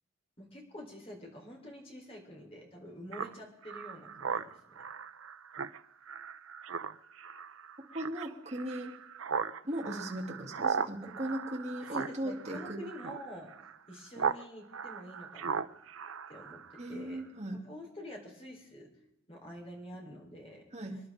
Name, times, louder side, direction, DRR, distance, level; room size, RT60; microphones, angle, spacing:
voice 1, 0.4-4.5 9.7-9.8 11.8-13.5 13.9-15.6 16.3-17.2 17.6-18.9 19.3-20.7, equal, 25° left, -1 dB, 4.3 m, -47 dB
Speech synthesizer, 3.1-14.4 14.7-16.9, right 6 dB, 75° right, 0.6 m, -38 dB
voice 2, 7.9-8.9 9.6-12.8 16.8-17.6 20.7-21.0, right 1 dB, 30° right, -1 dB, 2.9 m, -38 dB
27.5 x 11.0 x 3.8 m, 0.83 s
head